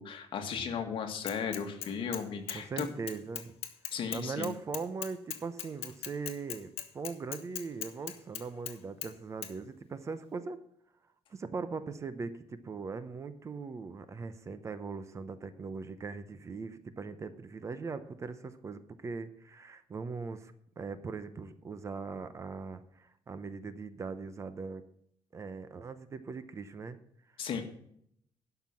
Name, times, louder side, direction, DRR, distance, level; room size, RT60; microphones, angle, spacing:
voice 1, 0.0-2.9 3.9-4.5 27.4-27.6, left 6 dB, 60° left, 5 dB, 1.9 m, -35 dB
Bicycle / Mechanisms, 1.3-2.2 2.5-8.8 9.0-9.1 9.4-9.5, left 11 dB, 80° left, 1.3 m, -39 dB
voice 2, 2.5-3.5 4.1-10.6 11.3-24.8 25.3-27.0 27.4-27.5, right 4 dB, 30° right, 12 dB, 0.8 m, -40 dB
12.0 x 5.9 x 7.2 m, 0.68 s
cardioid pair, 160°, 10 cm